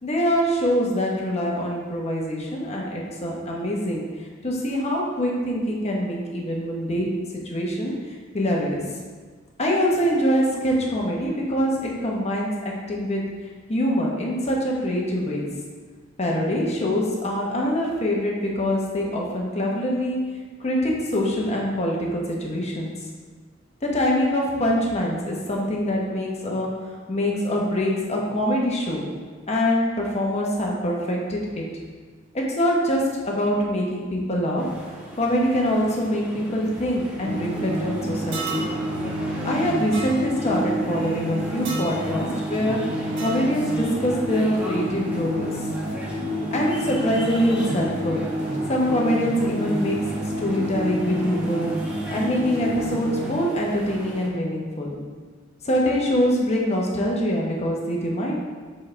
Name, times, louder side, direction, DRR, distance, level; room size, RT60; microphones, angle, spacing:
voice 1, 0.0-4.1 4.4-7.1 7.4-7.9 8.3-8.8 9.6-13.2 13.7-15.5 16.2-20.2 20.6-22.9 23.8-26.7 27.1-29.1 29.5-31.6 32.3-34.6 35.1-38.6 39.4-42.8 43.2-45.5 46.5-48.2 48.7-50.0 50.4-51.7 52.1-54.9 55.6-58.3, equal, 35° left, -2 dB, 1.1 m, -24 dB
sound 1, 34.6-54.3, equal, 5° right, 1.0 m, -38 dB
sound 2, 37.2-53.3, equal, 35° right, 1.3 m, -29 dB
sound 3, 38.3-38.7 39.9-40.1 41.6-41.9 43.2-43.4, right 5 dB, 65° right, 1.1 m, -32 dB
7.3 x 4.3 x 3.3 m, 1.5 s
head